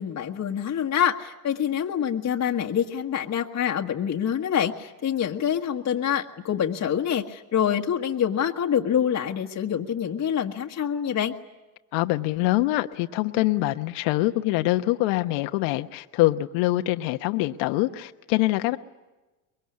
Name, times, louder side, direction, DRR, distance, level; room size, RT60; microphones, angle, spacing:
voice 1, 0.0-11.3, left 9 dB, 35° left, 1 dB, 1.5 m, -26 dB
voice 2, 11.9-18.8, left 17 dB, 65° left, 8 dB, 1.2 m, -24 dB
24.5 x 22.0 x 9.6 m, 1.1 s
hypercardioid pair, 90°, 48 cm